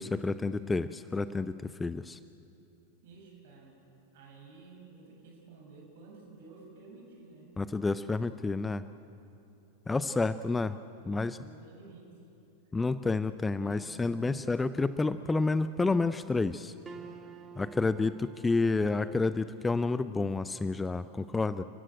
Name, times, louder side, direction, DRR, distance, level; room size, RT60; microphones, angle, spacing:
voice 1, 0.0-2.2 7.6-8.8 9.9-10.8 11.1-11.4 12.7-16.7 17.6-21.6, left 3 dB, 10° left, 14 dB, 0.5 m, -29 dB
voice 2, 3.0-3.8 4.1-7.5 10.0-10.6 11.0-12.1, right 3 dB, 55° right, 0 dB, 6.9 m, -53 dB
sound 1, 13.6-19.8, right 5 dB, 20° right, 1.7 m, -51 dB
30.0 x 15.0 x 9.0 m, 2.7 s
figure-of-eight pair, 90°, 0 cm